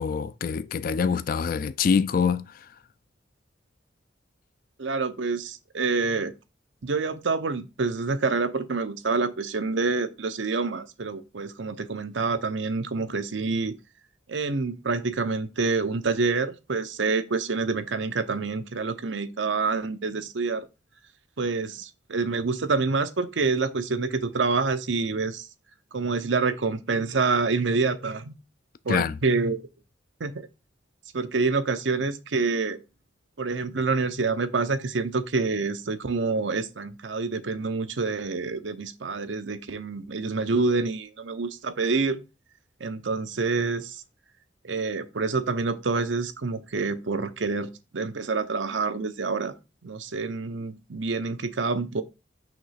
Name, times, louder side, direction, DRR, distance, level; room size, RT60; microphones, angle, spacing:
voice 1, 0.0-2.4 28.9-29.1, left 6 dB, 50° left, 0.3 m, -25 dB
voice 2, 4.8-6.3 6.8-13.8 14.3-20.7 21.4-25.5 25.9-28.4 28.8-29.6 30.2-30.5 31.1-32.8 33.4-42.2 42.8-44.0 44.6-49.5 49.8-52.0, right 4 dB, 90° right, 0.7 m, -27 dB
6.0 x 3.1 x 5.7 m
head